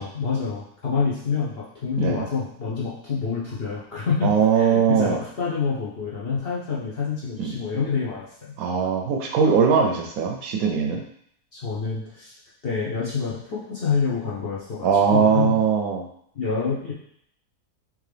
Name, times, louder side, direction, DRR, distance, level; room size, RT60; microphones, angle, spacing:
voice 1, 0.0-8.5 11.5-12.3 12.6-15.6 16.3-16.9, left 5 dB, 50° left, -6 dB, 0.8 m, -27 dB
voice 2, 4.2-5.2 7.4-7.5 8.6-11.0 14.8-16.0, right 6 dB, 70° right, 2 dB, 1.0 m, -20 dB
3.7 x 3.1 x 3.3 m, 0.69 s
omnidirectional pair, 1.6 m